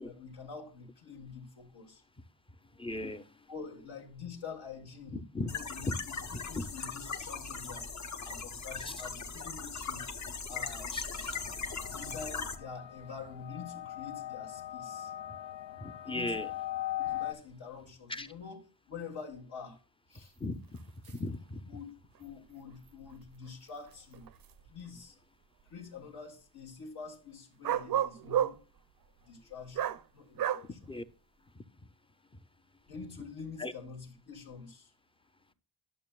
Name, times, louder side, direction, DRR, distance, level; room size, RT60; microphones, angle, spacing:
voice 1, 0.0-2.0 3.5-6.1 6.5-7.9 8.2-10.1 10.5-11.4 11.8-15.1 16.0-16.3 17.0-18.6 18.9-19.8 20.1-20.3 21.0-21.2 21.7-21.9 22.2-24.3 24.7-25.2 25.6-28.6 29.2-30.8 32.9-34.9, left 5 dB, 65° left, 1.7 m, -46 dB
voice 2, 2.8-3.3 5.1-5.5 5.9-6.0 6.6-6.7 8.9-9.0 10.9-11.1 15.8-16.5 18.1-18.3 20.4-20.8 21.1-21.6 30.8-31.0 31.5-31.6 33.6-33.7, left 2 dB, 15° left, 0.5 m, -37 dB
sound 1, 5.5-12.6, left 5 dB, 40° left, 0.8 m, -39 dB
sound 2, 11.1-17.3, left 14 dB, 80° left, 0.5 m, -40 dB
sound 3, 20.2-20.3 20.8-20.9 21.0-21.2 22.2-22.3 23.1-23.2 23.9-24.9 27.6-28.6 29.7-30.0 30.4-30.6, right 10 dB, 55° right, 0.5 m, -31 dB
11.0 x 6.7 x 2.3 m
wide cardioid pair, 125°, 43 cm